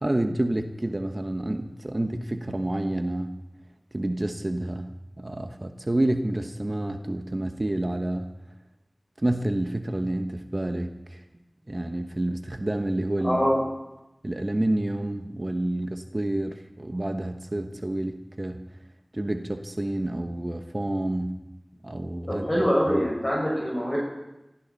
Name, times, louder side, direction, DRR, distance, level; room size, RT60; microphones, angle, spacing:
voice 1, 0.0-3.4 3.9-8.3 9.2-11.2 11.7-13.4 14.2-18.6 19.1-21.4 21.8-23.0, right 1 dB, 45° right, 6 dB, 1.2 m, -29 dB
voice 2, 13.2-13.6 22.3-24.0, equal, 30° left, -4 dB, 5.8 m, -24 dB
21.5 x 15.0 x 4.2 m, 0.96 s
wide cardioid pair, 45°, 0 cm